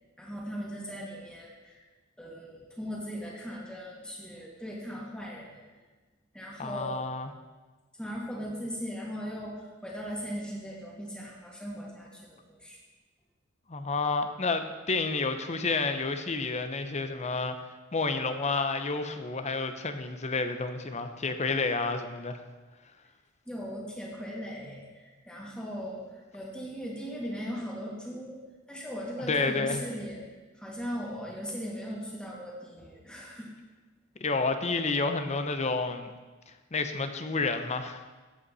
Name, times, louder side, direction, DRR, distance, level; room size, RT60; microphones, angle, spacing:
voice 1, 0.2-1.9 2.2-5.5 6.3-7.0 7.9-12.8 23.5-28.4 28.7-30.2 30.5-33.5, equal, 5° left, -3 dB, 2.4 m, -38 dB
voice 2, 6.6-7.3 13.7-17.6 17.9-22.4 29.3-29.8 34.2-36.1 36.5-38.0, left 3 dB, 35° left, 8 dB, 0.8 m, -30 dB
15.0 x 8.3 x 4.2 m, 1.3 s
head